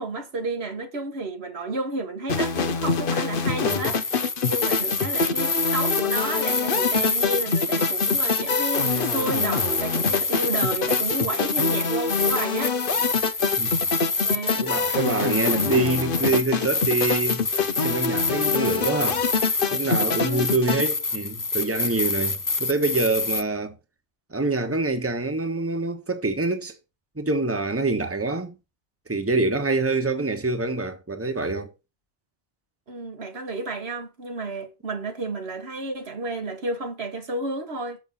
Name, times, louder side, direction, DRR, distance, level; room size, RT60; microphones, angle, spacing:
voice 1, 0.0-12.8 14.2-14.6 14.9-15.1 20.2-20.5 32.9-38.0, right 2 dB, 80° right, 1.8 m, -31 dB
sound 1, 2.3-20.9, left 5 dB, 60° left, 1.0 m, -26 dB
sound 2, 3.7-23.4, left 3 dB, 25° left, 0.5 m, -27 dB
voice 2, 14.6-17.5 17.8-19.2 19.7-23.8 24.3-26.8 27.2-28.6 29.1-31.7, right 3 dB, 15° right, 1.2 m, -25 dB
7.1 x 6.3 x 5.4 m
omnidirectional pair, 1.1 m